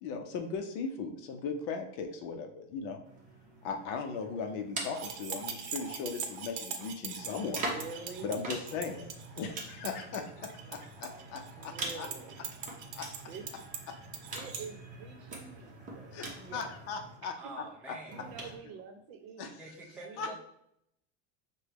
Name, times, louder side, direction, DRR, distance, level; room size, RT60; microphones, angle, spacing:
voice 1, 0.0-3.0 3.6-7.7 8.2-9.1 9.4-12.1 12.9-13.1 16.1-17.3 19.4-19.5 20.2-20.3, left 5 dB, 45° left, 5 dB, 0.6 m, -38 dB
sound 1, 3.0-6.3 7.1-17.2 18.1-18.6, right 2 dB, 20° right, 0.9 m, -44 dB
sound 2, 4.8-14.6, right 7 dB, 90° right, 0.8 m, -42 dB
voice 2, 7.3-8.4 11.2-12.5 13.3-13.6 14.3-16.8 17.2-17.5 18.1-19.6 20.0-20.3, right 5 dB, 65° right, 5 dB, 0.9 m, -47 dB
voice 3, 17.4-18.4 19.6-20.3, right 2 dB, 5° right, -3 dB, 0.5 m, -46 dB
5.9 x 2.2 x 3.4 m, 0.75 s
supercardioid pair, 150°, 35 cm